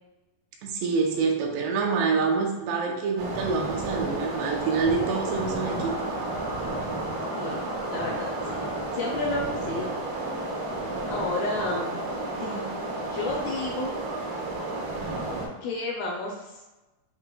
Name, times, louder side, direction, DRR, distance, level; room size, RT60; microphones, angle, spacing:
voice 1, 0.6-5.9, right 4 dB, 90° right, 1 dB, 2.8 m, -26 dB
sound 1, 3.2-15.5, right 2 dB, 70° right, 2.1 m, -31 dB
voice 2, 7.3-8.7 8.9-9.9 11.1-12.0 12.4-12.7 13.1-13.9 15.6-16.6, left 2 dB, 80° left, -2 dB, 2.1 m, -31 dB
8.0 x 2.8 x 2.2 m, 1.1 s
omnidirectional pair, 4.5 m